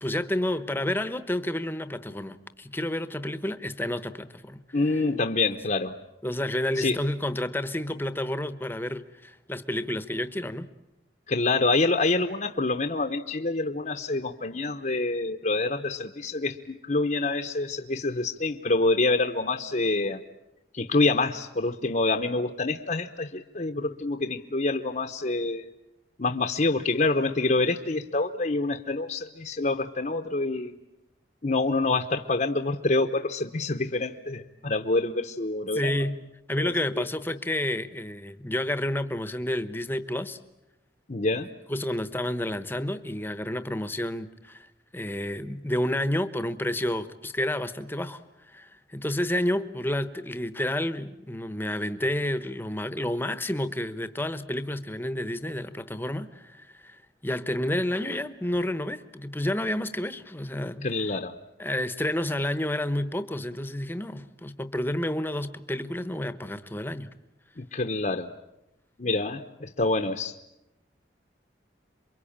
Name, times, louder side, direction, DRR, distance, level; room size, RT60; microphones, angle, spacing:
voice 1, 0.0-5.0 6.2-10.7 35.7-36.2 36.5-40.4 41.7-48.2 48.5-60.9 61.6-67.1, left 1 dB, 10° left, 12 dB, 1.0 m, -30 dB
voice 2, 4.7-6.0 6.8-7.0 11.3-20.2 20.7-25.7 26.2-30.7 31.4-35.9 36.6-37.0 41.1-41.5 60.8-61.3 67.6-68.3 69.0-70.3, left 3 dB, 45° left, 4 dB, 0.9 m, -26 dB
28.0 x 23.5 x 8.7 m, 0.90 s
head